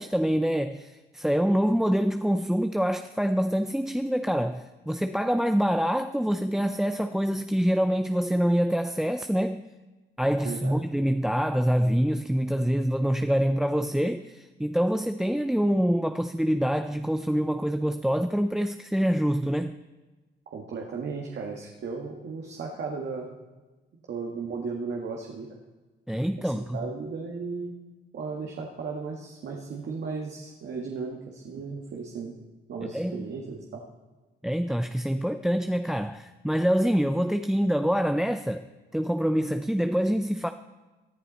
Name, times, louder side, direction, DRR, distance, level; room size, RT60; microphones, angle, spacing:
voice 1, 0.0-9.6 10.2-19.8 26.1-26.8 32.8-33.3 34.4-38.6 38.9-40.5, equal, ahead, 0.5 m, -25 dB
voice 2, 10.4-10.8 20.5-23.3 24.1-25.5 26.4-27.8 28.1-32.3 32.7-33.8, right 4 dB, 60° right, 1.8 m, -35 dB
19.0 x 11.0 x 4.2 m
cardioid pair, 90°, 20 cm